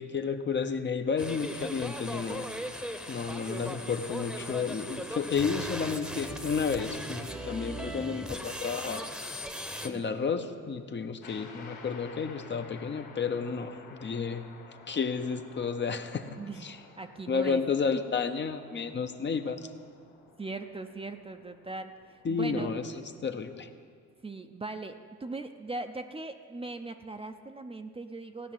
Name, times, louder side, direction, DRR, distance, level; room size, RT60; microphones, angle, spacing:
voice 1, 0.0-2.5 3.1-9.0 9.8-14.4 14.9-16.8 17.3-19.6 22.2-22.8 23.2-23.7, left 5 dB, 35° left, 7 dB, 0.8 m, -31 dB
sound 1, 1.2-9.9, equal, ahead, 1.0 m, -38 dB
sound 2, 11.2-23.7, left 5 dB, 85° left, 2.2 m, -53 dB
voice 2, 16.4-16.7 17.0-17.6 20.4-22.7 24.2-28.5, right 3 dB, 20° right, 7 dB, 0.6 m, -39 dB
16.0 x 5.9 x 9.0 m, 2.1 s
cardioid pair, 90°, 30 cm